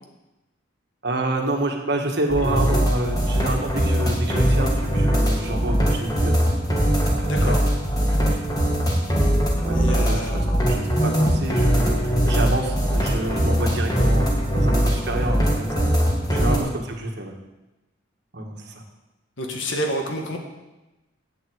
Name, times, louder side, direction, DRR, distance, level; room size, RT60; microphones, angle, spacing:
voice 1, 1.0-6.3 7.0-7.5 8.1-8.7 9.6-14.2 14.5-15.8 16.3-17.3 18.3-18.7, right 1 dB, 55° right, 2 dB, 1.6 m, -28 dB
sound 1, 2.3-16.6, equal, 20° left, 2.0 m, -21 dB
voice 2, 7.2-7.6 9.7-10.4 16.3-16.6 19.4-20.4, equal, 70° left, 3 dB, 1.8 m, -29 dB
8.4 x 7.8 x 8.0 m, 1.0 s
head